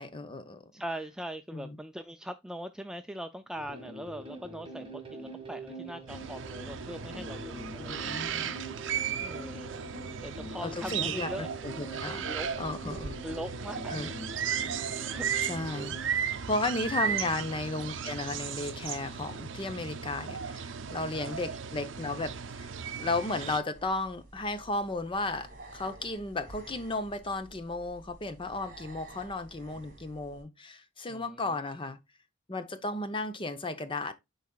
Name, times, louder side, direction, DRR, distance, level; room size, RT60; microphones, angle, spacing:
voice 1, 0.0-0.6 1.5-1.8 7.7-8.5 10.6-12.3 12.6-13.2 13.9-14.1 15.0-15.9 16.5-22.7 23.0-32.0 32.5-34.1, left 2 dB, 25° left, 0.8 m, -34 dB
voice 2, 0.7-8.2 9.2-9.7 10.2-11.5 12.1-12.5 13.2-14.0 15.1-15.3 17.1-17.2 21.1-21.4 31.1-31.5, equal, 5° right, 0.3 m, -41 dB
sound 1, 3.6-16.1, right 2 dB, 30° right, 1.9 m, -44 dB
sound 2, 6.1-23.6, right 7 dB, 65° right, 0.6 m, -36 dB
sound 3, 23.7-30.4, right 2 dB, 45° right, 2.6 m, -51 dB
10.5 x 4.1 x 2.3 m
head